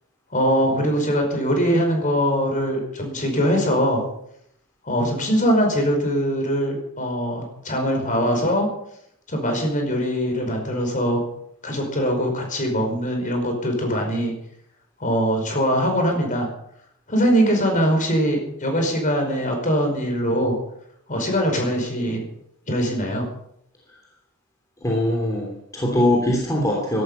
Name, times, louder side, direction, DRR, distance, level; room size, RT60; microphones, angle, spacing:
voice 1, 0.3-4.0 4.8-8.7 9.3-11.2 11.6-14.3 15.0-16.5 17.1-20.6 21.1-22.2 22.7-23.2, equal, 35° left, 3 dB, 5.2 m, -22 dB
voice 2, 24.8-27.0, left 1 dB, 15° left, -2 dB, 3.1 m, -22 dB
16.5 x 12.5 x 5.6 m, 0.73 s
head